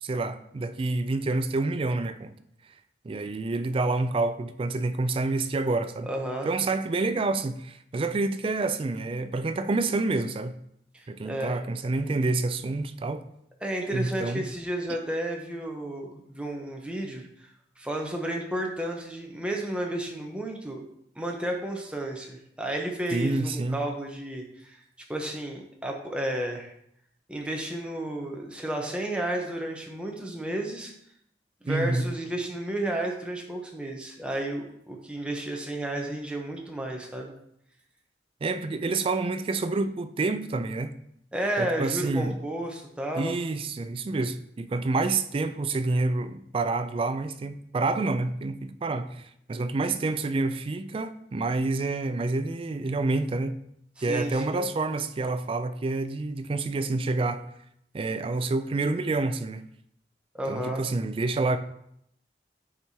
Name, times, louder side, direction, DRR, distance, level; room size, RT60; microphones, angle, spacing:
voice 1, 0.0-2.3 3.0-6.1 6.4-10.6 11.1-13.2 13.9-14.4 23.1-23.8 31.7-32.1 38.4-40.9 41.6-42.3 43.1-53.6 54.0-57.5 57.9-59.6 60.5-61.6, right 3 dB, 30° right, 0.3 m, -28 dB
voice 2, 6.1-6.5 10.9-11.6 13.6-17.5 17.8-20.8 21.2-24.8 25.1-26.7 27.3-30.9 31.6-37.3 41.3-43.4 54.0-54.6 60.3-60.8, right 1 dB, 5° right, 0.8 m, -32 dB
8.6 x 4.6 x 2.8 m
head